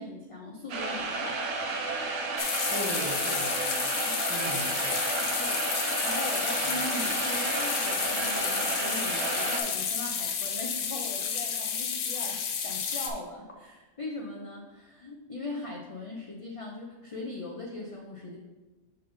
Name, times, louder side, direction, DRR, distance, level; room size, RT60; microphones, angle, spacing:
voice 1, 0.0-1.4 3.9-4.3 5.3-5.7 6.0-18.4, left 2 dB, 50° left, -1 dB, 0.4 m, -40 dB
sound 1, 0.7-9.6, right 3 dB, 70° right, 1.1 m, -32 dB
sound 2, 2.4-13.1, left 7 dB, 70° left, 1.0 m, -31 dB
voice 2, 2.7-3.9 4.3-5.0 6.6-6.8, right 1 dB, 15° right, -3 dB, 0.9 m, -38 dB
5.5 x 4.1 x 5.1 m, 1.2 s
omnidirectional pair, 1.4 m